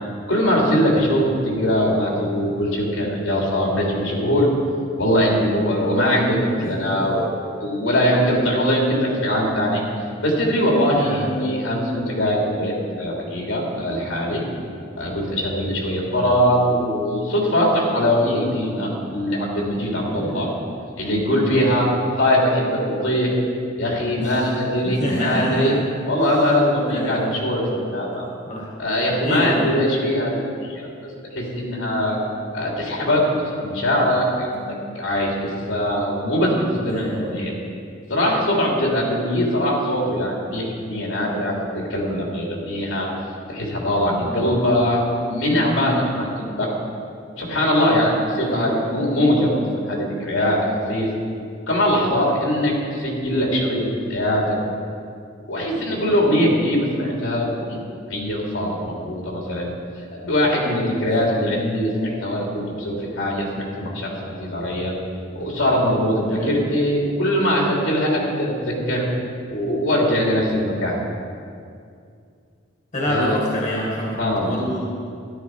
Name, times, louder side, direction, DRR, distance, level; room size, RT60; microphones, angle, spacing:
voice 1, 0.3-4.5 5.0-9.8 10.2-14.4 15.0-20.5 21.0-21.9 22.2-23.3 23.8-25.7 26.0-28.2 28.8-30.9 31.3-32.2 32.5-37.5 38.1-43.1 43.5-46.7 47.4-49.6 49.9-51.1 51.7-54.5 55.5-57.8 58.1-59.7 60.1-64.9 65.3-69.0 69.5-71.0 73.1-73.4 74.2-74.6, equal, 75° left, -2 dB, 3.1 m, -21 dB
voice 2, 6.6-7.2 10.9-11.4 20.2-20.5 21.5-21.6 24.2-24.5 24.8-25.7 26.9-27.4 28.5-28.7 29.2-29.7 36.8-37.5 44.2-44.4 48.4-48.7 55.7-56.1 66.3-66.5 72.9-74.8, equal, 40° left, -4 dB, 2.1 m, -27 dB
13.5 x 12.0 x 4.8 m, 2.4 s
head